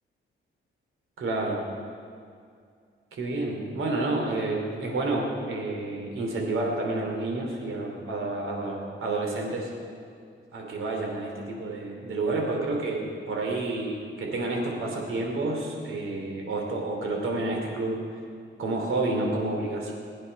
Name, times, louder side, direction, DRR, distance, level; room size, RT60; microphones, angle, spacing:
voice 1, 1.2-1.6 3.1-9.7 10.5-18.0 18.6-19.9, right 2 dB, 75° right, 0 dB, 3.2 m, -29 dB
20.5 x 10.0 x 5.4 m, 2.3 s
wide cardioid pair, 115°, 21 cm